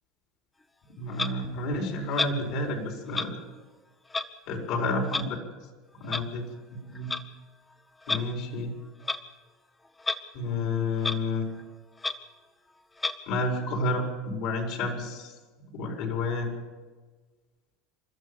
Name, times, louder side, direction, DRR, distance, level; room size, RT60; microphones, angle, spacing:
voice 1, 1.0-3.4 4.5-5.4 6.0-6.4 6.9-7.1 8.1-8.7 10.3-11.5 13.3-15.3 15.7-16.6, left 2 dB, 60° left, 2 dB, 5.0 m, -30 dB
Clock, 1.2-1.3 2.1-2.4 3.1-3.3 4.1-4.3 5.1-5.3 6.1-6.3 7.0-7.2 8.0-8.2 9.0-9.2 10.0-10.2 10.5-10.6 11.0-11.2 11.6-11.7 12.0-12.2 13.0-13.2, left 3 dB, 15° left, 1.0 m, -29 dB
27.5 x 13.5 x 7.1 m, 1.3 s
supercardioid pair, 135°, 0 cm